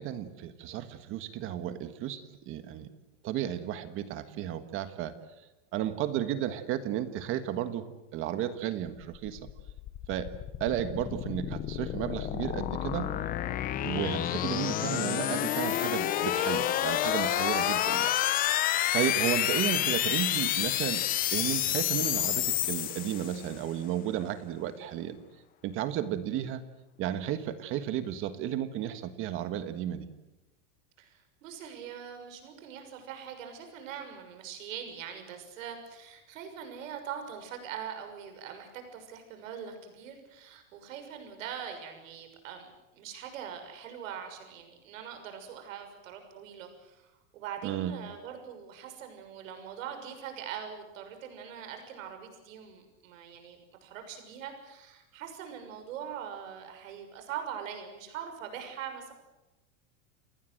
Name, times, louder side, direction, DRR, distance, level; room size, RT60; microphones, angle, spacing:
voice 1, 0.0-2.9 3.2-5.1 5.7-9.4 10.1-10.3 10.6-13.1 13.8-18.2 18.9-21.0 21.3-25.2 25.6-26.6 27.0-30.1 47.6-48.0, right 11 dB, 30° right, 11 dB, 1.6 m, -33 dB
sound 1, 9.1-23.6, left 12 dB, 20° left, 0.8 m, -29 dB
voice 2, 31.0-42.7 42.9-59.1, right 8 dB, 70° right, 6 dB, 6.5 m, -42 dB
29.0 x 20.0 x 7.8 m, 1.0 s
supercardioid pair, 165°, 40 cm